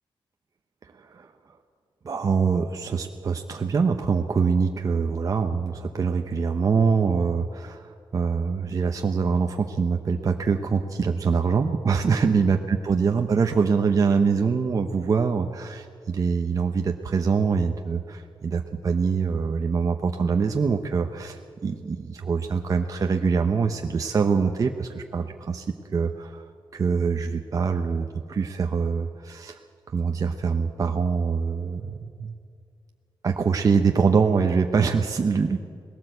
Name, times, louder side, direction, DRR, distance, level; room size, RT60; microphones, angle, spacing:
voice 1, 0.9-1.3 2.0-25.7 25.9-29.6 29.9-32.3 33.2-35.6, right 5 dB, 40° right, 4 dB, 0.8 m, -24 dB
20.0 x 17.0 x 7.9 m, 2.2 s
wide cardioid pair, 175°, 9 cm